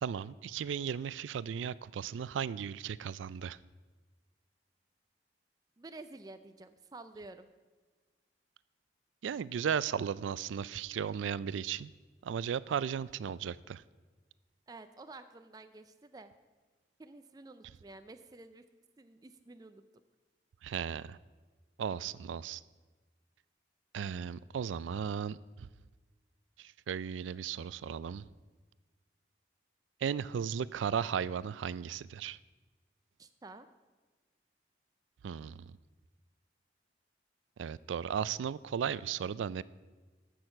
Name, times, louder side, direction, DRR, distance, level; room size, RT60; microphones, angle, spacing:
voice 1, 0.0-3.6 9.2-11.9 12.2-13.8 20.6-21.2 21.8-22.6 23.9-25.7 26.6-28.3 30.0-32.4 35.2-35.8 37.6-39.6, right 7 dB, 90° right, 19 dB, 0.3 m, -36 dB
voice 2, 5.8-7.5 14.7-16.3 17.0-18.6 19.0-19.8 33.2-33.7, right 2 dB, 20° right, 9 dB, 0.4 m, -50 dB
14.0 x 6.3 x 5.8 m, 1.3 s
head